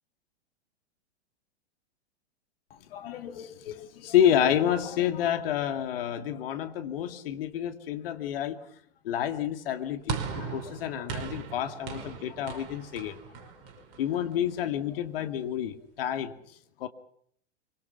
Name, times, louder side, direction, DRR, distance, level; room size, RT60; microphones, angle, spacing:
voice 1, 2.7-8.6 9.0-13.5 14.0-16.9, left 10 dB, 55° left, 8 dB, 2.4 m, -29 dB
sound 1, 10.1-14.5, right 7 dB, 40° right, 5.2 m, -38 dB
25.0 x 24.5 x 5.8 m, 0.66 s
figure-of-eight pair, 105°, 34 cm